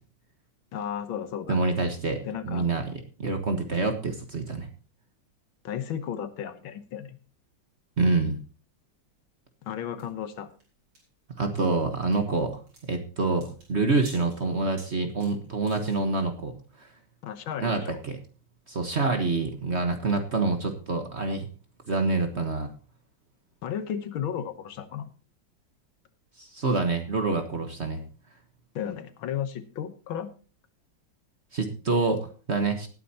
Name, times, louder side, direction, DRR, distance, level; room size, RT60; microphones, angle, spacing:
voice 1, 0.7-1.6 2.2-2.7 5.6-7.2 9.6-10.5 17.2-18.0 23.6-25.1 28.8-30.3, left 9 dB, 75° left, 11 dB, 1.8 m, -34 dB
voice 2, 1.5-2.9 3.2-4.7 8.0-8.4 11.4-12.5 12.9-16.9 17.6-18.2 18.7-21.5 21.9-22.7 26.4-28.0 31.5-32.9, right 3 dB, 35° right, 6 dB, 1.3 m, -27 dB
sound 1, 10.0-16.2, right 2 dB, 85° right, 5.6 m, -53 dB
19.0 x 9.1 x 2.8 m, 0.36 s
omnidirectional pair, 2.3 m